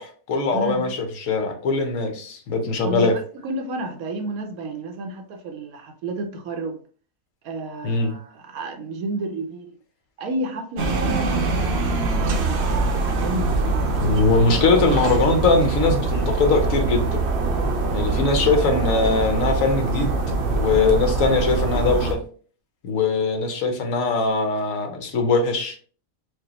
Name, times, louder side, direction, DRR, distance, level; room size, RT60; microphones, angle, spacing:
voice 1, 0.0-3.2 7.8-8.2 14.0-17.2 17.9-20.2 20.5-22.2 22.8-25.8, left 3 dB, 70° left, 1.1 m, -21 dB
voice 2, 0.5-0.9 2.8-3.1 3.4-6.8 7.4-9.7 10.2-12.6 13.0-13.9, right 2 dB, 85° right, 1.2 m, -31 dB
sound 1, 10.8-22.1, right 3 dB, 60° right, 0.8 m, -23 dB
4.7 x 2.2 x 2.9 m
omnidirectional pair, 1.5 m